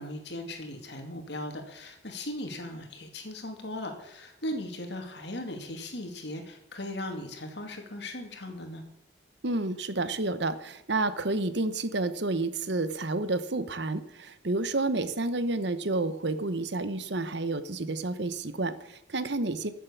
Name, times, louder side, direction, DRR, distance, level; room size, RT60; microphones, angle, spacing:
voice 1, 0.0-8.8, left 1 dB, 60° left, 4 dB, 2.5 m, -38 dB
voice 2, 9.4-19.7, right 2 dB, 65° right, 12 dB, 1.0 m, -30 dB
14.0 x 7.6 x 7.1 m, 0.83 s
head